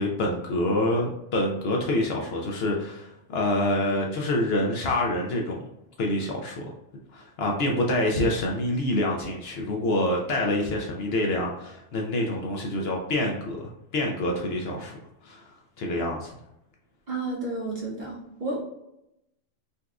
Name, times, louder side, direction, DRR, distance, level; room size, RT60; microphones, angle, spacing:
voice 1, 0.0-5.6 6.0-6.6 7.1-14.9 15.2-16.3, left 1 dB, 65° left, 0 dB, 0.7 m, -27 dB
voice 2, 17.1-18.6, right 2 dB, 50° right, -2 dB, 0.7 m, -31 dB
4.0 x 2.3 x 2.3 m, 0.83 s
omnidirectional pair, 1.3 m